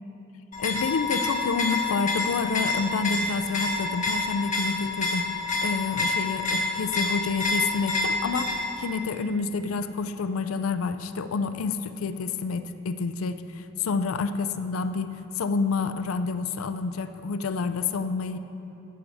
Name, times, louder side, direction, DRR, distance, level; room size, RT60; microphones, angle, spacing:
sound 1, 0.5-8.8, left 3 dB, 40° left, 1.2 m, -28 dB
voice 1, 0.6-5.2 5.6-18.4, left 4 dB, 85° left, 11 dB, 0.5 m, -29 dB
14.0 x 8.4 x 3.5 m, 2.8 s
head